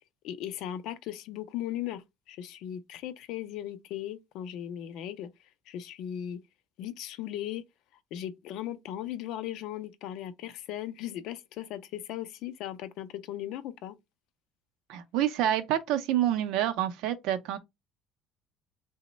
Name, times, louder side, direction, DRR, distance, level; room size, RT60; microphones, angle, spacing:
voice 1, 0.2-5.3 5.7-6.4 6.8-7.6 8.1-14.0, left 11 dB, 55° left, 0.4 m, -37 dB
voice 2, 14.9-17.6, right 11 dB, 65° right, 0.5 m, -27 dB
3.0 x 2.0 x 3.9 m
cardioid pair, 175°, 0 cm